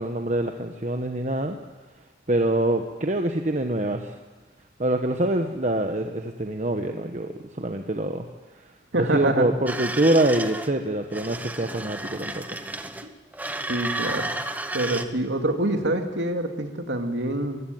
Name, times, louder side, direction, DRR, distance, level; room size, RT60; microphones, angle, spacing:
voice 1, 0.0-1.6 2.3-4.2 4.8-8.3 8.9-12.4, right 1 dB, 40° right, 4 dB, 1.1 m, -25 dB
voice 2, 8.9-9.5 13.0-13.1 13.7-14.3 14.7-17.6, right 1 dB, 85° right, 5 dB, 2.4 m, -26 dB
sound 1, 9.7-10.7 11.1-13.1 13.3-15.0, right 2 dB, 10° right, 0.9 m, -32 dB
23.0 x 15.5 x 9.3 m, 1.3 s
head